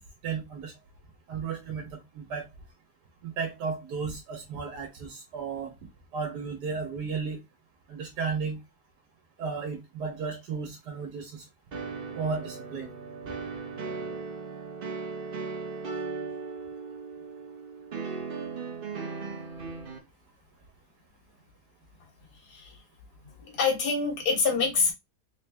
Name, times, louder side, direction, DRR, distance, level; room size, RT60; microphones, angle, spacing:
voice 1, 0.2-0.7 1.3-2.5 3.2-5.7 6.1-7.4 7.9-8.6 9.4-11.4 12.1-12.9, right 5 dB, 80° right, 2 dB, 1.4 m, -34 dB
sound 1, 11.7-20.0, right 4 dB, 50° right, 0.7 m, -37 dB
voice 2, 23.4-24.9, left 4 dB, 70° left, 2 dB, 1.8 m, -26 dB
3.7 x 2.6 x 3.4 m, 0.20 s
omnidirectional pair, 1.7 m